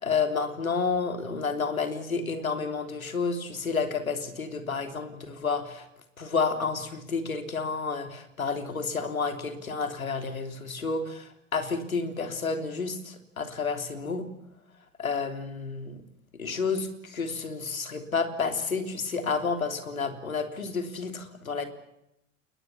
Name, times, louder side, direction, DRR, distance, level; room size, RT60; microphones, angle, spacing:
voice 1, 0.0-5.9 6.2-14.3 15.0-16.0 16.4-21.7, left 4 dB, 85° left, 7 dB, 3.4 m, -30 dB
29.0 x 20.5 x 7.2 m, 0.83 s
figure-of-eight pair, 80°, 40 cm